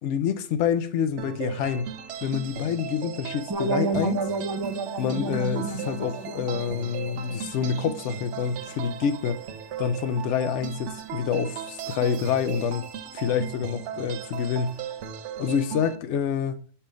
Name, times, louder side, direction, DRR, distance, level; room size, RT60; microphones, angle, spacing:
voice 1, 0.0-1.9 2.2-4.3 5.0-9.4 9.8-12.9 13.1-14.8 15.4-16.6, left 7 dB, 70° left, 0.9 m, -27 dB
sound 1, 1.2-16.0, right 8 dB, 70° right, 0.9 m, -37 dB
sound 2, 3.5-8.4, right 4 dB, 25° right, 0.5 m, -31 dB
5.7 x 3.5 x 5.0 m
omnidirectional pair, 1.3 m